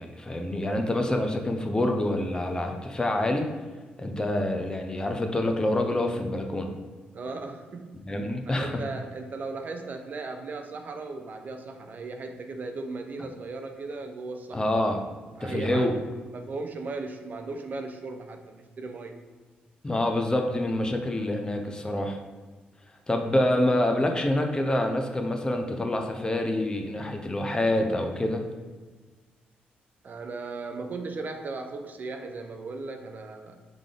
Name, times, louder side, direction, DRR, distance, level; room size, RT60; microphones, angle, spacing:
voice 1, 0.0-3.5 4.0-6.7 8.0-8.8 14.5-15.0 15.4-15.9 19.8-22.2 23.1-28.4, left 1 dB, 20° left, 4 dB, 0.6 m, -26 dB
voice 2, 7.1-7.9 8.5-14.7 15.4-16.0 16.3-19.2 30.0-33.6, right 3 dB, 50° right, 5 dB, 0.5 m, -37 dB
3.7 x 3.3 x 3.7 m, 1.3 s
supercardioid pair, 65°, 4 cm